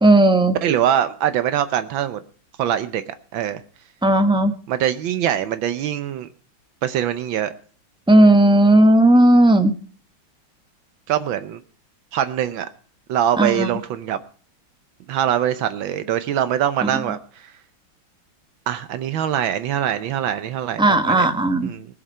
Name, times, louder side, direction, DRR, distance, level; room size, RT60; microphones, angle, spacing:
voice 1, 0.0-0.6 4.0-4.5 8.1-9.7 13.4-13.7 20.8-21.7, right 1 dB, 5° right, 8 dB, 0.6 m, -14 dB
voice 2, 0.6-2.2 2.6-3.0 3.3-3.6 4.7-6.3 6.8-7.5 11.1-11.6 12.1-12.7 13.1-14.2 15.1-17.2 18.7-21.3 21.6-21.9, right 10 dB, 75° right, 11 dB, 1.5 m, -23 dB
20.0 x 7.4 x 5.5 m, 0.43 s
omnidirectional pair, 2.2 m